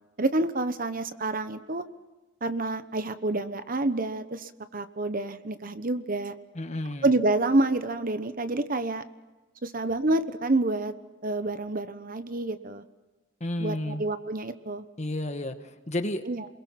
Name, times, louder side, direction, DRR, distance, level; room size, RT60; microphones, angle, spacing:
voice 1, 0.2-1.8 2.4-6.4 7.0-9.0 9.6-10.9 11.2-12.8 13.6-14.8 16.3-16.5, right 2 dB, 45° right, 11 dB, 1.1 m, -28 dB
voice 2, 6.5-7.1 13.4-14.0 15.0-16.2, left 1 dB, 35° left, 8 dB, 1.5 m, -31 dB
29.0 x 22.0 x 5.9 m, 1.2 s
head